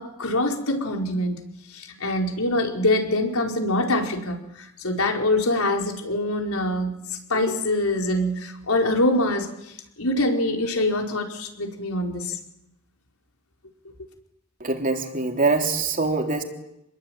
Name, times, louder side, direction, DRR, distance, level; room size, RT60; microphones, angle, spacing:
voice 1, 0.0-1.4 1.7-7.0 7.3-9.5 10.0-12.3, left 1 dB, 85° left, 2 dB, 4.8 m, -24 dB
voice 2, 14.6-16.4, right 3 dB, 40° right, 3 dB, 3.5 m, -23 dB
27.5 x 21.5 x 9.2 m, 0.83 s
head